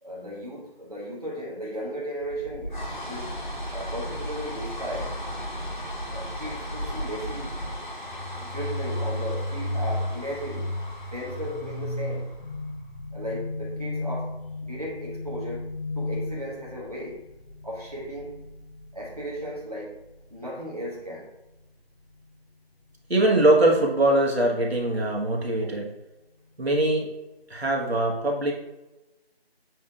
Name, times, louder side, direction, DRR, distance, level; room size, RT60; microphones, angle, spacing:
voice 1, 0.0-2.7 3.0-3.3 3.7-5.2 6.1-7.6 8.4-10.8 11.1-12.3 13.1-17.2 17.6-18.4 18.9-20.0 20.3-21.3 24.9-25.0 25.6-25.7, equal, 40° right, -5 dB, 1.2 m, -36 dB
sound 1, 2.2-12.7, equal, 50° left, 0.9 m, -36 dB
sound 2, 8.1-19.6, left 1 dB, 90° left, 0.8 m, -33 dB
voice 2, 23.1-25.9 26.6-27.1 27.5-28.5, right 1 dB, 80° right, -1 dB, 1.3 m, -22 dB
7.2 x 2.8 x 2.3 m, 1.0 s
figure-of-eight pair, 180°, 31 cm